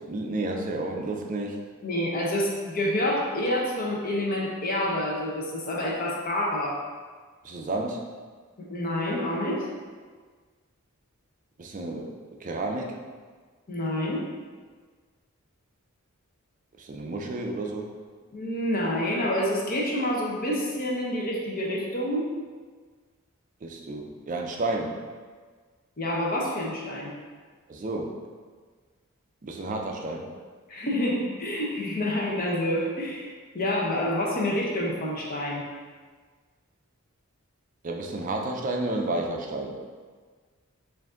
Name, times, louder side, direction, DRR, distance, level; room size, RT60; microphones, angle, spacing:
voice 1, 0.0-1.6 7.4-8.0 11.6-12.1 12.4-13.0 16.8-17.9 23.6-25.0 27.7-28.1 29.4-30.3 37.8-39.8, right 2 dB, 35° right, 2 dB, 0.4 m, -31 dB
voice 2, 1.8-6.8 8.6-9.7 13.7-14.2 18.3-22.3 26.0-27.1 30.7-35.7, left 1 dB, 40° left, -3 dB, 0.7 m, -28 dB
4.7 x 2.6 x 3.7 m, 1.5 s
head